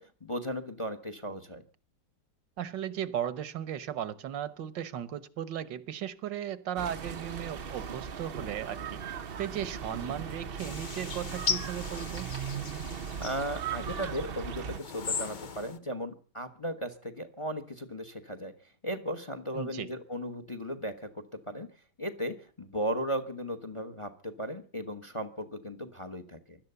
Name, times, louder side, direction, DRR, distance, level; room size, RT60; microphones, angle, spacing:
voice 1, 0.0-1.6 13.2-18.5 18.8-21.7 22.0-26.6, equal, 20° left, 11 dB, 1.0 m, -36 dB
voice 2, 2.6-9.0 9.4-12.3 19.5-19.9, right 10 dB, 80° right, 17 dB, 1.7 m, -36 dB
sound 1, 6.8-14.8, right 7 dB, 45° right, 0.7 m, -38 dB
sound 2, 10.6-14.1 14.7-15.8, left 5 dB, 40° left, 0.7 m, -37 dB
16.5 x 12.0 x 6.9 m, 0.43 s
omnidirectional pair, 1.9 m